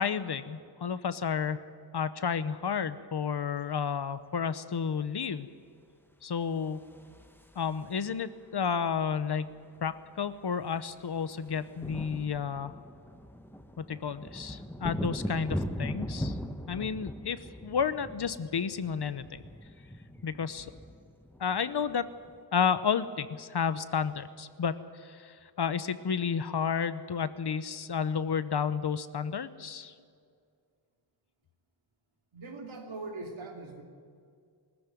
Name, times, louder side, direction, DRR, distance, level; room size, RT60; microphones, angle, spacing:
voice 1, 0.0-1.6 1.9-5.5 6.2-6.8 7.6-9.5 9.8-12.7 13.8-16.4 16.7-19.4 20.2-20.7 21.4-22.0 22.5-29.9, left 6 dB, 60° left, 13 dB, 0.9 m, -31 dB
sound 1, 6.6-8.2 9.5-9.6 9.8-10.0 10.3-22.4, equal, 5° left, 1.0 m, -40 dB
voice 2, 32.3-33.8, right 3 dB, 85° right, 1 dB, 2.9 m, -41 dB
20.0 x 14.0 x 9.2 m, 2.2 s
wide cardioid pair, 90°, 46 cm